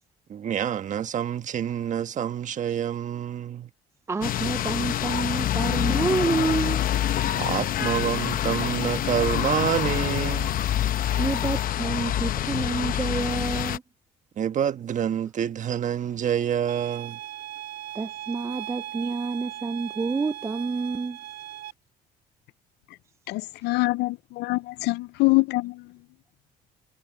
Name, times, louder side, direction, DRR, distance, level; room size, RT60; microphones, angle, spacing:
voice 1, 0.3-3.7 7.4-10.6 14.4-17.2, right 9 dB, 45° right, 1.3 m, -27 dB
voice 2, 4.1-6.9 11.2-13.8 17.9-21.2, right 4 dB, 15° right, 0.4 m, -28 dB
sound 1, 4.2-13.8, left 11 dB, 55° left, 0.8 m, -26 dB
sound 2, 16.7-21.7, right 12 dB, 80° right, 3.5 m, -38 dB
voice 3, 23.3-25.9, left 22 dB, 80° left, 0.4 m, -25 dB
cardioid pair, 110°, 17 cm